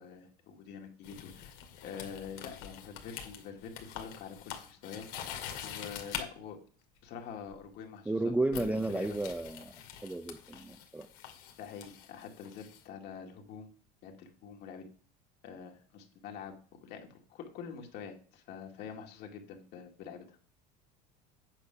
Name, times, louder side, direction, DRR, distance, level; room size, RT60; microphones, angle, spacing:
voice 1, 0.0-1.5 1.8-6.6 7.0-9.2 11.6-13.7 14.0-14.9 15.4-20.4, left 7 dB, 55° left, 3 dB, 2.3 m, -46 dB
sound 1, 1.0-6.2 7.5-7.7 8.5-12.8, left 9 dB, 80° left, 2.3 m, -45 dB
voice 2, 8.1-9.7 10.0-11.1, right 2 dB, 5° right, 10 dB, 0.6 m, -32 dB
8.9 x 6.3 x 5.7 m, 0.44 s
supercardioid pair, 110°, 20 cm